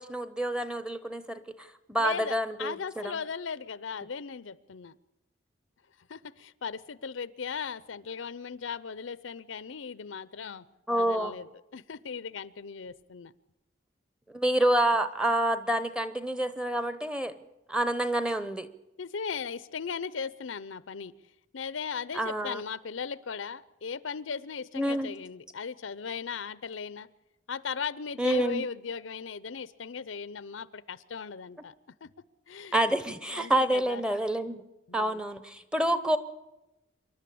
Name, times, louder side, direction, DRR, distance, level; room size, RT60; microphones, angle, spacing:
voice 1, 0.0-2.7 3.0-3.1 10.9-11.4 14.3-17.4 17.7-18.7 22.1-22.6 24.8-25.1 28.2-28.6 32.7-34.6 34.9-36.2, right 1 dB, 5° right, 12 dB, 0.8 m, -28 dB
voice 2, 2.0-4.9 6.1-10.6 11.0-13.3 19.0-21.1 21.5-27.1 27.5-31.7 32.0-32.1 32.5-32.8 33.3-34.0 34.9-35.2, left 6 dB, 85° left, 17 dB, 0.6 m, -37 dB
26.5 x 11.5 x 8.5 m, 0.98 s
head